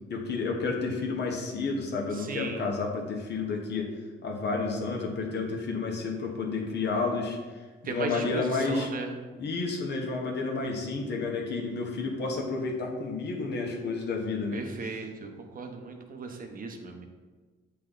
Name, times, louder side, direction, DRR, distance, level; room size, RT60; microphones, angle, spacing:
voice 1, 0.1-3.9 4.2-7.4 7.8-8.9 9.4-14.6, left 4 dB, 60° left, 0 dB, 1.3 m, -31 dB
voice 2, 2.1-2.7 7.8-9.1 14.5-17.0, right 4 dB, 45° right, 4 dB, 0.9 m, -37 dB
8.1 x 3.4 x 3.8 m, 1.3 s
cardioid pair, 90°, 20 cm